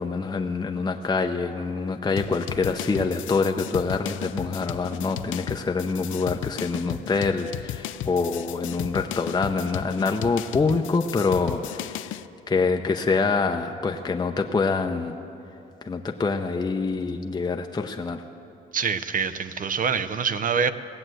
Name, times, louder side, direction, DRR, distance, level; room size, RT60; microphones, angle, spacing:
voice 1, 0.0-15.2 15.8-18.2, left 4 dB, 20° left, 4 dB, 0.6 m, -26 dB
sound 1, 2.2-12.3, left 12 dB, 80° left, 0.4 m, -35 dB
voice 2, 18.7-20.7, right 6 dB, 45° right, 13 dB, 0.7 m, -25 dB
18.0 x 7.8 x 7.8 m, 2.9 s
cardioid pair, 90°, 20 cm